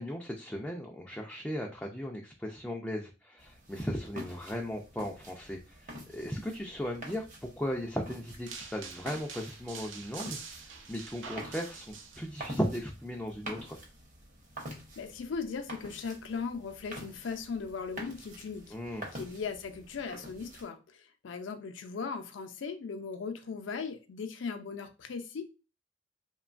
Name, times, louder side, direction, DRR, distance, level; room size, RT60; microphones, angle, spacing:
voice 1, 0.0-10.4 10.9-13.8 18.7-19.1, equal, 5° left, 0 dB, 0.3 m, -37 dB
sound 1, 3.4-20.7, equal, 45° right, 0.8 m, -48 dB
sound 2, 8.5-12.5, right 5 dB, 80° right, 0.5 m, -45 dB
voice 2, 14.7-18.7 19.1-25.5, left 5 dB, 75° left, 7 dB, 0.5 m, -38 dB
2.9 x 2.2 x 2.4 m, 0.32 s
head